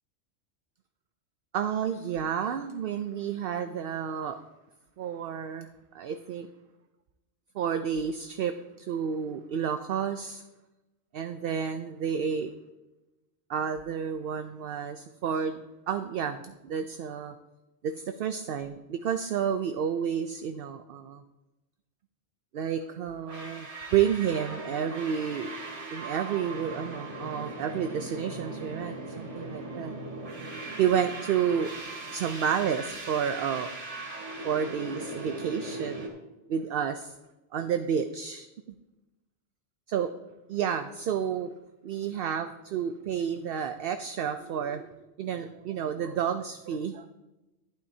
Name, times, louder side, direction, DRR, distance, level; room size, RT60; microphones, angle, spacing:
voice 1, 1.5-4.4 5.0-5.7 5.9-6.5 7.5-10.4 11.1-12.5 13.5-17.3 17.8-21.2 22.5-25.5 25.9-29.9 30.8-31.7 32.1-33.7 34.4-36.1 36.5-37.1 37.5-38.5 39.9-40.1 40.5-41.5 41.8-47.1, right 8 dB, 60° right, 9 dB, 0.7 m, -30 dB
sound 1, 23.3-36.1, right 2 dB, 85° right, 2.7 m, -39 dB
11.5 x 11.5 x 2.7 m, 1.0 s
omnidirectional pair, 1.2 m